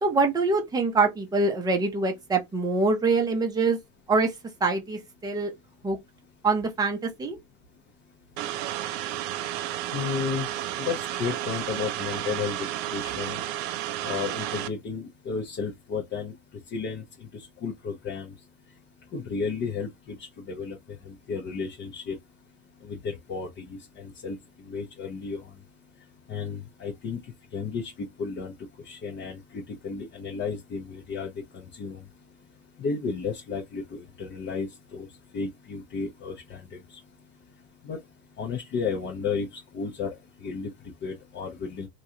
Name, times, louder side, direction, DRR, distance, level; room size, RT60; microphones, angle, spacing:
voice 1, 0.0-3.8 4.1-4.3 4.6-5.5 5.8-6.0 6.4-7.4, right 3 dB, 10° right, 0.6 m, -24 dB
sound 1, 8.4-14.7, right 13 dB, 65° right, 0.6 m, -32 dB
voice 2, 9.9-10.5 10.8-12.6 12.9-13.4 14.0-16.3 16.7-18.3 19.1-19.9 20.5-20.8 21.0-22.2 22.8-24.4 24.7-25.4 26.3-27.2 27.5-28.5 28.8-32.0 32.8-35.1 35.3-36.6 36.9-37.0 37.8-38.0 38.4-40.7 41.0-41.9, left 5 dB, 25° left, 0.7 m, -33 dB
3.1 x 2.5 x 2.8 m
supercardioid pair, 140°, 43 cm